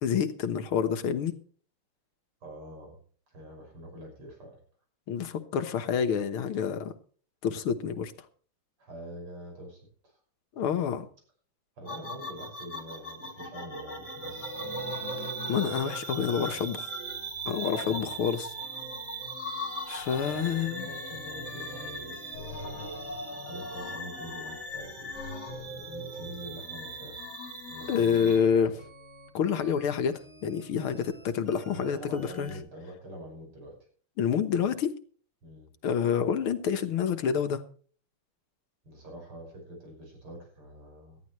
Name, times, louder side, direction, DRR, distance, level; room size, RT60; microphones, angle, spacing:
voice 1, 0.0-1.3 5.1-6.9 7.4-8.1 10.6-11.1 15.5-16.8 17.5-18.5 19.9-20.9 27.9-28.7 29.3-32.5 34.2-34.9 35.8-37.6, left 7 dB, 75° left, 2.1 m, -28 dB
voice 2, 2.4-3.0 3.3-4.6 8.8-10.2 11.8-15.1 16.2-16.7 17.8-18.2 20.3-23.0 23.5-25.1 25.5-27.3 27.7-28.6 31.7-33.8 35.4-35.7 38.8-41.2, equal, 90° right, 6.9 m, -45 dB
sound 1, 11.9-28.4, right 1 dB, 50° left, 3.5 m, -38 dB
sound 2, 14.3-32.6, right 1 dB, 50° right, 5.0 m, -51 dB
18.5 x 13.0 x 3.2 m
omnidirectional pair, 2.3 m